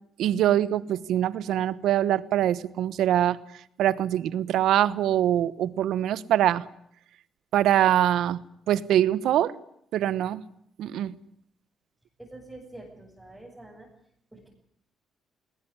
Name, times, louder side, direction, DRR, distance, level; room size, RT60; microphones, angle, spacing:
voice 1, 0.2-6.7 7.5-8.4 8.7-9.5 9.9-10.4 10.8-11.1, right 11 dB, 80° right, 17 dB, 1.1 m, -24 dB
voice 2, 12.2-13.9 14.3-14.5, right 2 dB, 10° right, -4 dB, 7.2 m, -46 dB
20.5 x 19.5 x 9.9 m, 0.72 s
cardioid pair, 90°, 0 cm